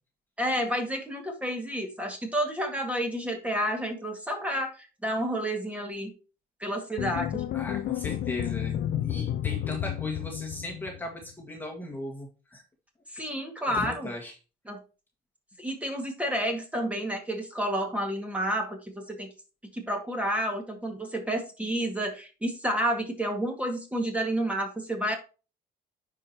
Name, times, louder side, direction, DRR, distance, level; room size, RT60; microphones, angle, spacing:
voice 1, 0.4-6.1 6.6-7.4 13.1-14.1 14.7-14.8 15.6-19.3 19.7-25.1, equal, 10° right, 2 dB, 2.0 m, -30 dB
sound 1, 7.0-11.2, left 11 dB, 65° left, 0.6 m, -31 dB
voice 2, 7.5-12.6 13.7-14.3, left 1 dB, 10° left, -1 dB, 1.8 m, -38 dB
9.7 x 4.9 x 2.9 m, 0.32 s
cardioid pair, 110°, 17 cm